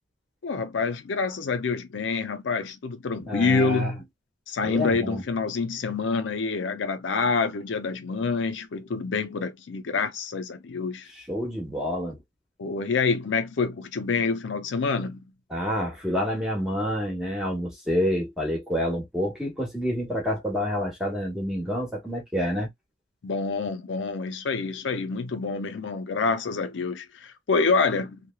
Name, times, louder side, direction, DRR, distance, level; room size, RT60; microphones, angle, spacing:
voice 1, 0.4-4.0 4.5-11.1 12.6-15.2 23.2-28.2, left 4 dB, 75° left, 0.5 m, -27 dB
voice 2, 3.2-3.9 4.6-5.2 11.3-12.2 15.5-22.7, equal, 5° right, 1.1 m, -28 dB
3.0 x 2.1 x 2.2 m
head